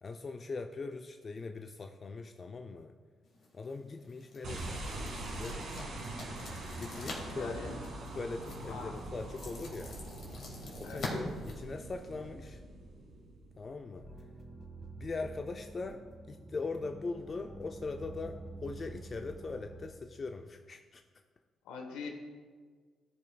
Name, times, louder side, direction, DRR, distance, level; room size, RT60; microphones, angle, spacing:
voice 1, 0.0-2.9 3.5-5.8 6.8-7.6 8.2-10.0 10.8-12.6 13.6-14.1 15.0-16.0 16.3-21.0, left 3 dB, 45° left, 5 dB, 0.4 m, -41 dB
sound 1, 3.2-12.3, left 2 dB, 60° left, 2.1 m, -47 dB
sound 2, 4.4-13.8, right 2 dB, 70° right, 1.9 m, -43 dB
voice 2, 7.3-7.8 8.6-9.0 10.8-11.2 21.6-22.1, left 4 dB, 80° left, 3 dB, 1.0 m, -43 dB
sound 3, 14.0-19.9, right 2 dB, 15° right, 1.6 m, -48 dB
14.0 x 5.2 x 2.3 m, 1.6 s
hypercardioid pair, 50°, 0 cm